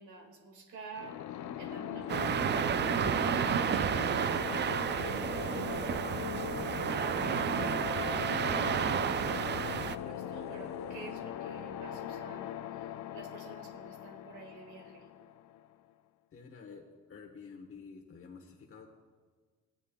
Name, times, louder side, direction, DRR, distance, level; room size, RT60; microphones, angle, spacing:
voice 1, 0.0-5.9 6.5-15.1, right 4 dB, 75° right, 3 dB, 1.9 m, -50 dB
sound 1, 0.9-15.6, left 10 dB, 70° left, 0.6 m, -40 dB
sound 2, 2.0-11.1, left 2 dB, 20° left, 1.4 m, -53 dB
sound 3, 2.1-10.0, right 8 dB, 35° right, 0.4 m, -31 dB
voice 2, 16.3-18.9, left 5 dB, 45° left, 0 dB, 1.1 m, -50 dB
17.0 x 9.8 x 2.3 m, 1.5 s
cardioid pair, 90°, 30 cm